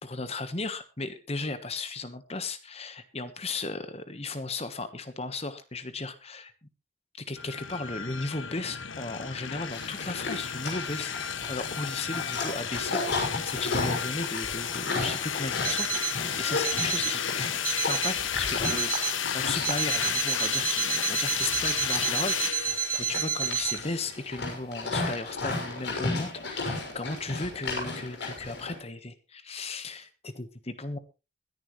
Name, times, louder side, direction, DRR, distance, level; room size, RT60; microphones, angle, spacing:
voice 1, 0.0-6.5 7.2-11.1 11.5-31.0, left 3 dB, 30° left, 11 dB, 1.3 m, -36 dB
sound 1, 7.4-24.1, left 8 dB, 90° left, 1.3 m, -33 dB
Livestock farm animals working animals, 9.5-28.7, left 3 dB, 70° left, 6.3 m, -34 dB
Alarm, 15.6-16.2 16.6-17.2 17.6-18.2 18.6-19.2 19.6-23.8, right 7 dB, 45° right, 1.9 m, -30 dB
22.0 x 10.5 x 3.2 m, 0.29 s
head